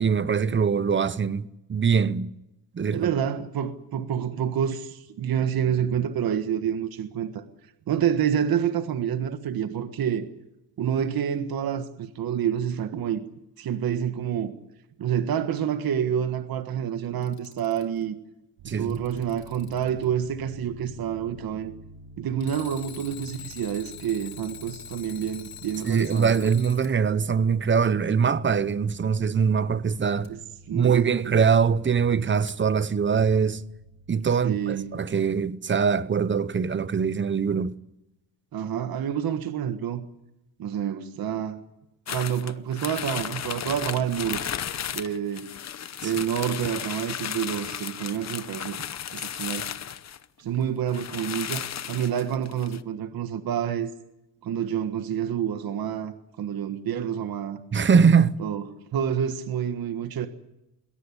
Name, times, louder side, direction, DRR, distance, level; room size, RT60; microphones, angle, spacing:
voice 1, 0.0-2.3 2.7-3.1 18.7-19.0 25.8-30.3 30.7-33.6 34.1-37.7 46.0-46.1 57.7-58.4, right 6 dB, 25° right, 0.9 m, -23 dB
voice 2, 2.9-7.4 7.9-10.3 10.8-13.2 13.6-14.5 15.0-18.2 18.6-21.7 22.2-26.5 30.3-30.4 30.7-31.3 34.4-35.0 38.5-40.0 40.6-41.6 42.1-44.4 44.9-45.5 46.0-48.8 49.1-49.7 50.4-53.9 54.4-57.6 58.4-58.6 58.9-60.3, right 9 dB, 50° right, 1.6 m, -28 dB
Alarm, 17.0-18.0 18.7-20.0 22.4-26.9 30.2-30.3 32.5-32.6, left 10 dB, 70° left, 2.7 m, -45 dB
sound 1, 18.6-35.0, right 1 dB, 90° right, 3.9 m, -49 dB
sound 2, 42.1-50.3 50.6-50.7 50.9-52.8, left 9 dB, 35° left, 0.9 m, -34 dB
22.0 x 17.5 x 9.8 m
cardioid pair, 130°, 46 cm